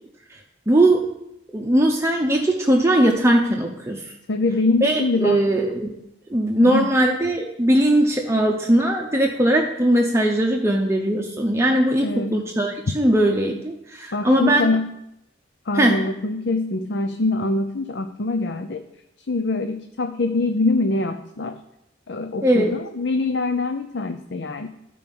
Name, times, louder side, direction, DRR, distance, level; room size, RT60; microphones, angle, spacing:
voice 1, 0.7-1.1 1.5-4.1 4.8-5.9 6.3-14.7 15.7-16.0 22.4-22.7, right 1 dB, 15° right, 1 dB, 0.7 m, -19 dB
voice 2, 4.3-5.4 6.6-6.9 12.0-12.4 14.1-14.9 15.7-18.8 19.3-21.6 22.1-24.7, left 2 dB, 60° left, 7 dB, 0.6 m, -24 dB
13.5 x 4.6 x 5.4 m, 0.83 s
head